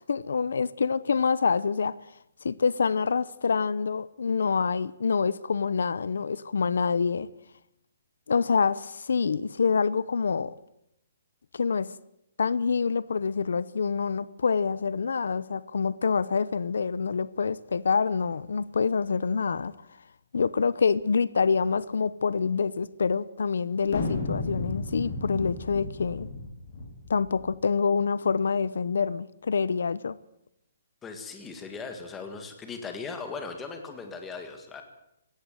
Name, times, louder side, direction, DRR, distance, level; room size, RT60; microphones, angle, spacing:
voice 1, 0.0-2.0 2.4-7.3 8.3-10.6 11.5-11.9 12.4-19.7 20.3-26.3 27.1-30.2, left 5 dB, 80° left, 0.8 m, -26 dB
sound 1, 23.9-27.5, left 3 dB, 40° left, 4.4 m, -33 dB
voice 2, 31.0-34.8, left 4 dB, 10° left, 1.8 m, -38 dB
18.0 x 16.5 x 9.2 m
hypercardioid pair, 175°, 0 cm